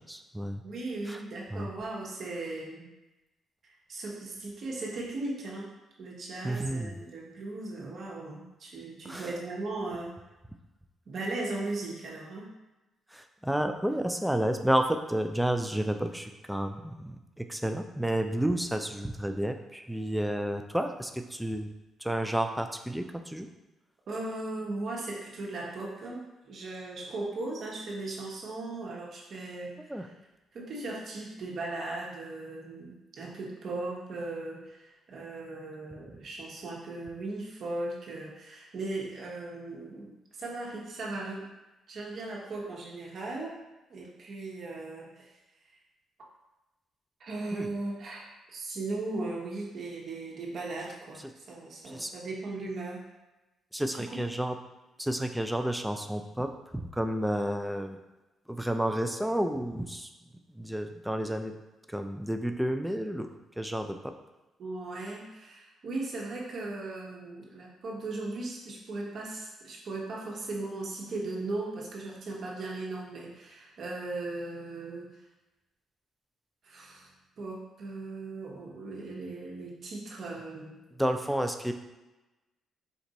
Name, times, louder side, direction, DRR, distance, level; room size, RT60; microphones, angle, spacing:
voice 1, 0.1-0.6 1.1-1.2 1.5-1.7 6.4-7.0 9.0-9.3 13.1-21.7 22.0-23.5 29.9-30.1 47.5-47.7 51.9-52.1 53.7-54.6 55.0-58.0 58.5-60.1 60.5-61.5 61.9-63.3 63.6-64.1 81.0-81.7, right 1 dB, 5° right, 6 dB, 0.4 m, -31 dB
voice 2, 0.6-2.9 3.6-5.7 6.0-10.2 11.1-12.5 24.1-30.1 30.5-41.5 41.9-43.6 43.9-45.4 47.2-53.0 53.9-54.2 64.6-75.2 76.6-77.1 77.4-80.8, right 2 dB, 55° right, -3 dB, 1.1 m, -38 dB
4.6 x 2.5 x 4.0 m, 1.1 s
cardioid pair, 90°, 0 cm